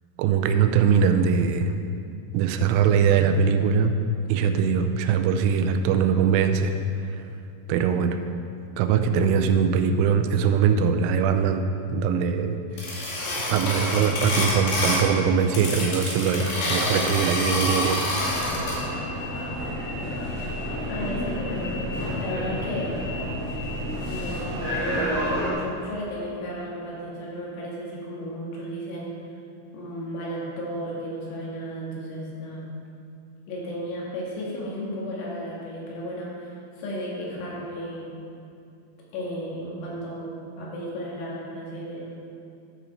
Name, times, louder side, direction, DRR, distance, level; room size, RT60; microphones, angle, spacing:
voice 1, 0.2-1.8 2.3-3.9 4.3-7.2 7.7-8.2 8.8-12.6 13.5-18.1, right 6 dB, 90° right, 7 dB, 3.1 m, -22 dB
sound 1, 12.8-15.1 15.4-18.8, left 1 dB, 55° left, 3.8 m, -27 dB
sound 2, 18.1-25.5, equal, 50° right, 1.1 m, -30 dB
voice 2, 20.9-21.8 22.2-22.9 24.0-29.1 29.7-32.6 33.5-38.1 39.1-42.2, equal, 80° left, -5 dB, 4.4 m, -34 dB
12.0 x 7.0 x 4.4 m, 2.5 s
omnidirectional pair, 5.6 m